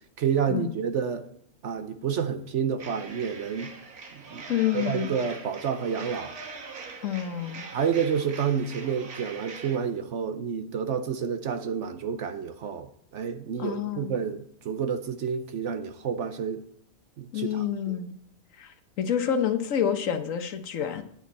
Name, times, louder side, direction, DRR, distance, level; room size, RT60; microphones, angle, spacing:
voice 1, 0.2-1.3 1.6-3.7 4.1-6.3 7.7-16.7 17.2-18.0, right 7 dB, 60° right, 0.9 m, -29 dB
sound 1, 2.8-9.8, right 4 dB, 85° right, 1.7 m, -42 dB
voice 2, 4.5-5.1 7.0-7.7 13.6-14.1 17.3-18.1 18.6-21.0, left 9 dB, 65° left, 1.3 m, -28 dB
9.5 x 8.7 x 4.2 m
omnidirectional pair, 1.5 m